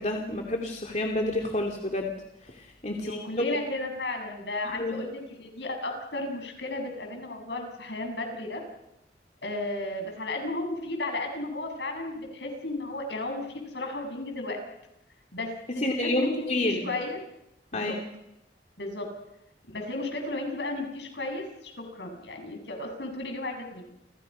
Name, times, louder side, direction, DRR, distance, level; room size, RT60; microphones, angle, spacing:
voice 1, 0.0-2.1 2.4-3.4 4.7-4.9 15.8-16.8 17.7-18.0, left 1 dB, 40° left, 1 dB, 2.7 m, -29 dB
voice 2, 2.9-8.6 9.4-14.6 15.3-16.3 16.7-17.2 17.7-18.0 18.8-19.1 19.7-23.9, left 2 dB, 75° left, 3 dB, 7.1 m, -34 dB
30.0 x 26.0 x 5.7 m, 0.87 s
head